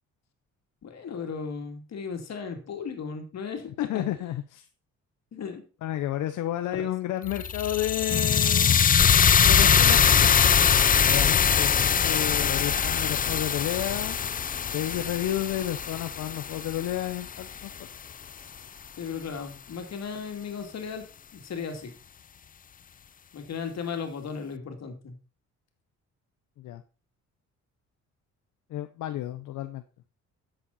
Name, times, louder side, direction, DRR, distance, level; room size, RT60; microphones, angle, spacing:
voice 1, 0.8-4.1 5.3-5.6 6.7-6.8 19.0-21.1 21.3-21.9 23.3-25.1, left 6 dB, 60° left, 5 dB, 2.8 m, -36 dB
voice 2, 3.8-4.7 5.8-8.8 9.4-10.5 11.0-14.2 14.7-17.9 26.6-26.8 28.7-29.8, left 13 dB, 80° left, 8 dB, 0.8 m, -31 dB
sound 1, 7.3-17.4, left 7 dB, 30° left, 0.5 m, -22 dB
12.0 x 7.7 x 4.2 m, 0.35 s
cardioid pair, 90°, 30 cm